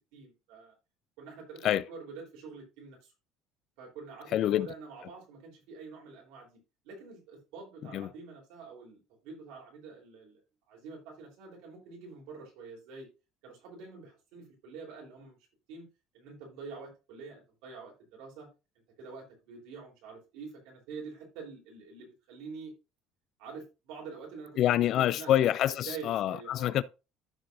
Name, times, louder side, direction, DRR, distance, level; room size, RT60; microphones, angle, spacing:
voice 1, 0.1-0.7 1.2-3.1 3.8-6.6 6.8-10.4 10.7-13.1 13.4-15.4 15.7-15.9 16.1-18.5 19.0-22.7 23.4-25.3 25.9-26.8, right 4 dB, 75° right, 3.6 m, -46 dB
voice 2, 4.3-4.7 7.9-8.1 24.6-26.8, left 12 dB, 45° left, 0.3 m, -26 dB
14.0 x 4.7 x 2.6 m
cardioid pair, 160°, 0 cm